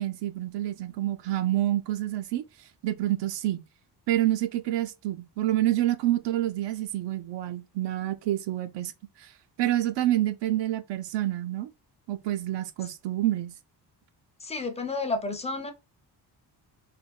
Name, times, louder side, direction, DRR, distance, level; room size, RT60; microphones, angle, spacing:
voice 1, 0.0-2.4 2.8-3.6 4.1-8.9 9.2-9.3 9.6-11.7 12.1-13.5, right 14 dB, 80° right, 0.5 m, -28 dB
voice 2, 14.4-15.7, left 3 dB, 15° left, 0.5 m, -31 dB
3.3 x 2.1 x 2.3 m
cardioid pair, 120°, 41 cm